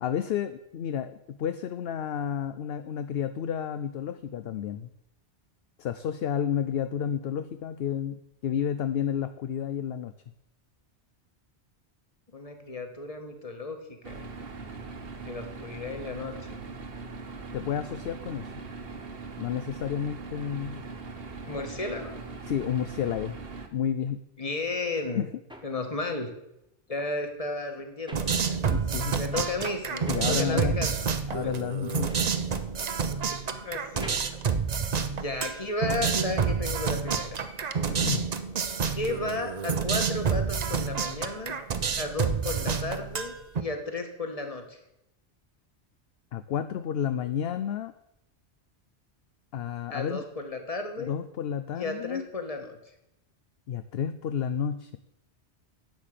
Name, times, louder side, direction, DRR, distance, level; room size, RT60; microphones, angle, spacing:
voice 1, 0.0-4.9 5.8-10.1 17.5-18.5 19.4-20.8 22.5-23.4 23.7-24.2 25.1-25.3 28.7-29.2 30.1-30.8 31.3-32.3 37.9-38.2 46.3-47.9 49.5-50.2 51.1-52.2 53.7-55.0, left 8 dB, 65° left, 11 dB, 0.8 m, -31 dB
voice 2, 12.3-13.8 14.0-14.3 15.2-16.6 21.4-22.2 24.4-25.2 25.6-26.3 26.9-28.6 29.2-31.1 33.1-34.2 35.1-37.4 38.9-41.6 42.0-44.8 49.9-51.1 51.7-52.8, left 2 dB, 30° left, 5 dB, 1.6 m, -34 dB
sound 1, 14.0-23.7, right 4 dB, 60° right, 1.4 m, -41 dB
sound 2, 24.8-29.0 29.3-35.5, equal, 5° right, 1.3 m, -51 dB
sound 3, 28.1-43.6, right 6 dB, 40° right, 0.7 m, -29 dB
11.0 x 7.4 x 6.7 m, 0.84 s
omnidirectional pair, 1.1 m